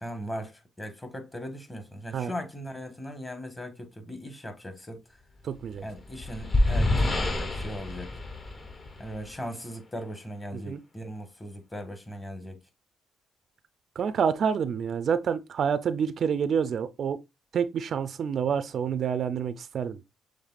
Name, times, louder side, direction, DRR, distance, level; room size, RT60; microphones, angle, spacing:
voice 1, 0.0-5.0 5.8-8.1 9.0-12.6, equal, 20° left, 1.4 m, -39 dB
voice 2, 5.4-5.8 10.5-10.8 14.0-17.2 17.5-20.0, right 7 dB, 60° right, 0.5 m, -28 dB
sound 1, 5.7-9.4, left 2 dB, 40° left, 1.4 m, -27 dB
6.6 x 3.2 x 2.4 m
cardioid pair, 90°, 0 cm